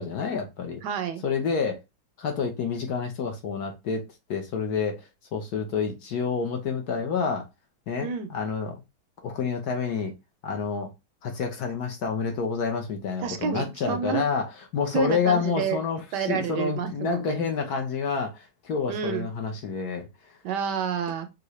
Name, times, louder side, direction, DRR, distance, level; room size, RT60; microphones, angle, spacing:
voice 1, 0.0-0.8 1.2-1.8 2.2-4.0 4.3-5.0 5.3-7.4 7.9-8.8 9.2-10.1 10.4-10.9 11.2-14.5 14.7-20.1, left 5 dB, 65° left, 1.3 m, -28 dB
voice 2, 0.8-1.2 8.0-8.3 13.2-14.2 14.9-15.8 16.1-17.5 18.9-19.3 20.4-21.3, right 7 dB, 70° right, 1.2 m, -29 dB
4.8 x 2.7 x 3.1 m
omnidirectional pair, 2.0 m